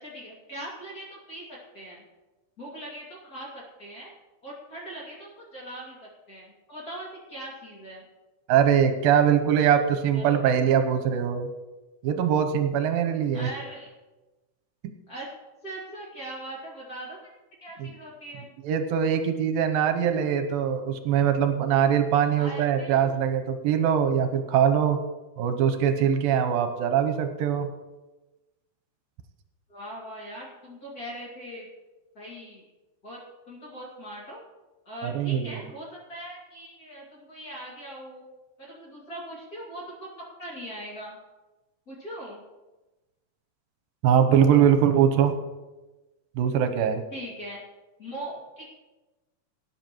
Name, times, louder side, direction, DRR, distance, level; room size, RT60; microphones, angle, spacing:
voice 1, 0.0-2.0 2.6-4.1 4.4-8.0 10.1-10.6 13.3-13.9 15.1-15.3 15.6-17.3 17.6-18.5 22.3-23.1 29.7-31.7 32.1-32.6 33.0-33.2 33.5-34.4 34.9-38.2 38.6-41.2 41.9-42.4 47.1-47.6 48.0-48.7, right 1 dB, 30° left, -5 dB, 2.2 m, -40 dB
voice 2, 8.5-11.5 12.0-13.5 14.8-14.9 17.8-17.9 18.6-25.0 25.4-27.7 35.0-35.6 44.0-45.4 46.4-47.0, right 8 dB, 85° right, 7 dB, 2.5 m, -22 dB
18.5 x 9.8 x 3.0 m, 1.1 s
omnidirectional pair, 4.2 m